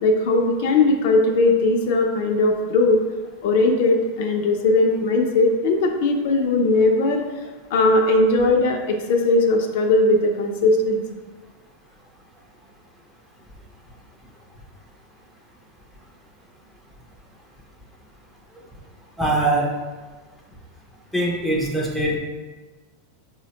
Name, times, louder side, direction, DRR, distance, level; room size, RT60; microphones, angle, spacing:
voice 1, 0.0-3.0 3.4-7.2 7.7-11.0, left 2 dB, 60° left, 3 dB, 0.4 m, -19 dB
voice 2, 19.2-19.7 21.1-22.2, right 1 dB, 5° right, -3 dB, 0.5 m, -22 dB
4.7 x 2.1 x 2.8 m, 1.3 s
supercardioid pair, 160°, 0 cm